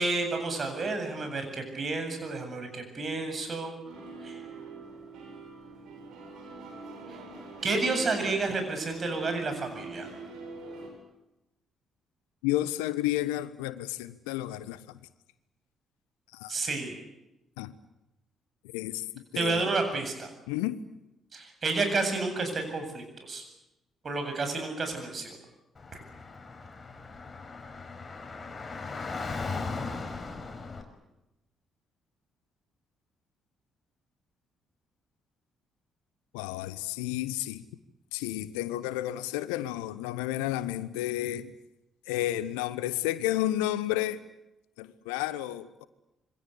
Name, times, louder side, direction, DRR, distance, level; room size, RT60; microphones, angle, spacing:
voice 1, 0.0-3.8 4.2-4.4 7.1-7.2 7.6-10.1 16.5-17.0 19.3-20.3 21.3-23.4 24.0-25.4, right 3 dB, 40° right, 7.9 m, -30 dB
sound 1, 3.8-10.9, right 4 dB, 60° right, 7.4 m, -44 dB
voice 2, 12.4-15.0 16.3-16.5 17.6-17.7 18.7-19.7 20.5-20.8 36.3-37.6 38.1-41.5 42.1-44.2 44.8-45.9, left 14 dB, 70° left, 1.0 m, -31 dB
Car / Traffic noise roadway noise, 25.8-30.8, left 4 dB, 30° left, 5.5 m, -38 dB
27.0 x 24.5 x 8.4 m
figure-of-eight pair, 40°, 0 cm